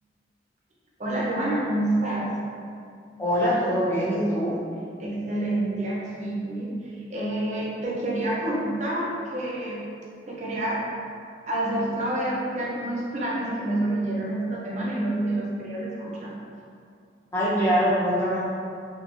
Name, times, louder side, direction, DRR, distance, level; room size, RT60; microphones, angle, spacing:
voice 1, 1.0-2.3 5.0-9.8 10.3-10.8 11.5-16.3, right 1 dB, 40° right, -5 dB, 0.5 m, -28 dB
voice 2, 3.2-4.6 17.3-18.4, equal, 15° left, -9 dB, 0.7 m, -23 dB
3.4 x 2.3 x 2.5 m, 2.3 s
head